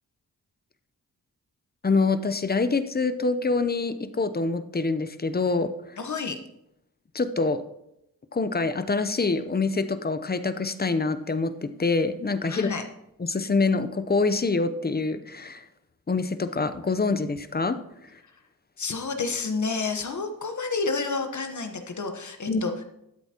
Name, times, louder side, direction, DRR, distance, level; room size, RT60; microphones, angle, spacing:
voice 1, 1.8-5.7 7.1-7.6 8.3-12.7 13.2-15.6 16.1-17.8 22.5-22.6, left 3 dB, 25° left, 11 dB, 0.7 m, -25 dB
voice 2, 6.0-6.4 12.5-12.9 18.8-22.7, left 4 dB, 50° left, 6 dB, 1.2 m, -29 dB
13.0 x 7.9 x 2.9 m, 0.81 s
cardioid pair, 60°, 37 cm